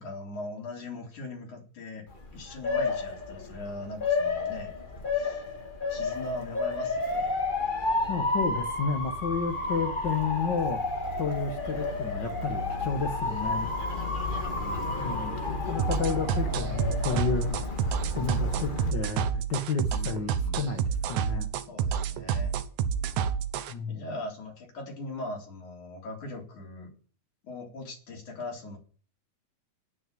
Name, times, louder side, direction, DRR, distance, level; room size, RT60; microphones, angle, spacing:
voice 1, 0.0-4.7 5.1-5.5 5.9-7.4 14.0-14.9 19.9-20.6 21.7-22.5 23.9-26.9 27.4-28.8, left 2 dB, 75° left, 0 dB, 5.3 m, -40 dB
Motor vehicle (road) / Siren, 2.1-18.9, left 3 dB, 20° left, 1.4 m, -31 dB
voice 2, 8.1-10.8 11.2-13.7 15.0-21.5 23.7-24.1, left 5 dB, 50° left, 7 dB, 1.5 m, -31 dB
sound 1, 15.8-23.7, right 7 dB, 75° right, 2.3 m, -29 dB
18.0 x 6.5 x 7.8 m, 0.42 s
omnidirectional pair, 3.5 m